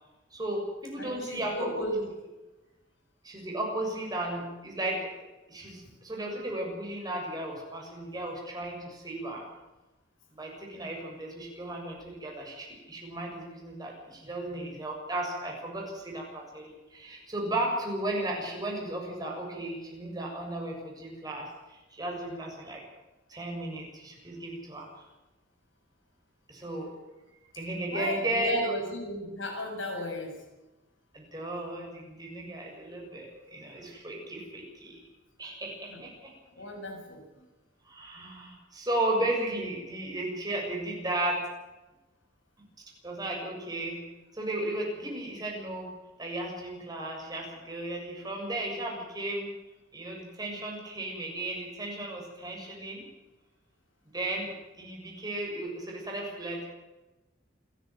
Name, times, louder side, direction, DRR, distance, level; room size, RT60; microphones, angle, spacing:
voice 1, 0.3-1.8 3.2-5.1 5.5-9.4 10.4-22.8 23.3-24.9 26.5-26.9 27.6-28.7 31.1-35.0 35.4-36.3 37.9-41.4 43.0-44.0 44.3-45.9 46.2-49.5 49.9-53.0 54.1-54.5 54.8-56.7, right 1 dB, 20° right, -1 dB, 7.2 m, -35 dB
voice 2, 1.0-2.1 27.9-30.4 33.4-33.5 35.9-36.0 36.6-37.2, equal, 90° left, 3 dB, 7.1 m, -34 dB
28.5 x 11.5 x 9.2 m, 1.1 s
head